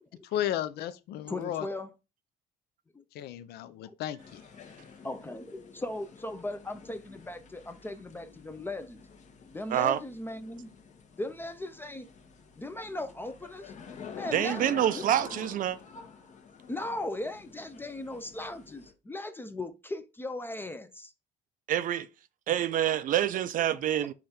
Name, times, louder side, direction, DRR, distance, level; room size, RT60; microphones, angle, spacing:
voice 1, 0.3-1.7 3.1-4.4, left 11 dB, 75° left, 0.5 m, -34 dB
voice 2, 1.3-1.9 2.9-3.0 3.6-3.9 5.0-9.0 9.5-10.7 11.2-12.1 12.6-13.7 14.1-15.0 15.3-15.5 16.7-21.1 23.9-24.0, left 2 dB, 15° left, 0.4 m, -38 dB
sound 1, 4.2-18.9, left 6 dB, 45° left, 0.8 m, -48 dB
voice 3, 14.3-15.8 21.7-22.1 22.5-24.1, right 11 dB, 55° right, 0.4 m, -27 dB
4.9 x 2.3 x 4.2 m
cardioid pair, 110°, 17 cm